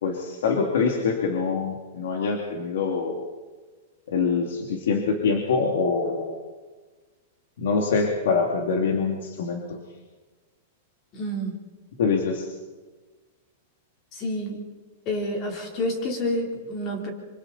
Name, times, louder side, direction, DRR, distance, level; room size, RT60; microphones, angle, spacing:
voice 1, 0.0-3.2 4.1-6.4 7.6-9.8 12.0-12.5, left 5 dB, 80° left, 2 dB, 2.8 m, -25 dB
voice 2, 11.1-11.6 14.1-14.6 15.1-17.1, left 1 dB, 30° left, 1 dB, 3.9 m, -28 dB
26.0 x 25.5 x 4.3 m, 1.3 s
supercardioid pair, 160°, 0 cm